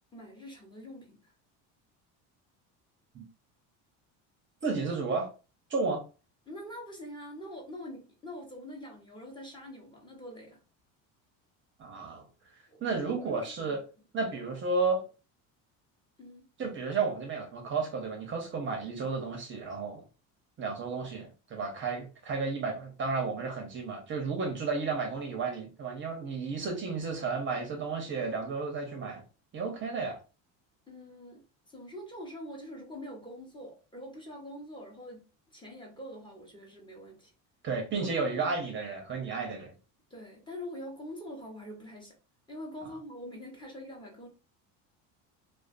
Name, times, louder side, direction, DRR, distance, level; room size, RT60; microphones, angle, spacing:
voice 1, 0.1-1.3 6.5-10.6 12.7-13.8 16.2-16.5 30.9-37.3 38.2-38.5 40.1-42.1 42.5-44.3, equal, 15° left, 0.9 m, -45 dB
voice 2, 4.6-5.3 5.7-6.0 11.8-12.2 12.8-13.8 14.1-15.0 16.6-20.0 20.6-29.2 29.5-30.2 37.6-39.7, right 4 dB, 30° right, 0.6 m, -32 dB
2.4 x 2.3 x 2.5 m
cardioid pair, 120°, 37 cm